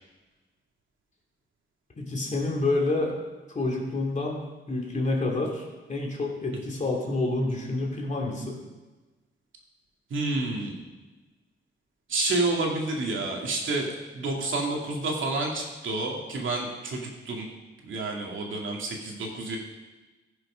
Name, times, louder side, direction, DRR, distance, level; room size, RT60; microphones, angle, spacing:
voice 1, 2.0-3.1 3.5-4.4 4.7-8.6, left 2 dB, 35° left, -1 dB, 2.5 m, -28 dB
voice 2, 10.1-10.8 12.1-17.5 17.9-19.6, right 2 dB, 70° right, 0 dB, 2.4 m, -29 dB
15.5 x 6.4 x 5.6 m, 1.2 s
wide cardioid pair, 145°, 21 cm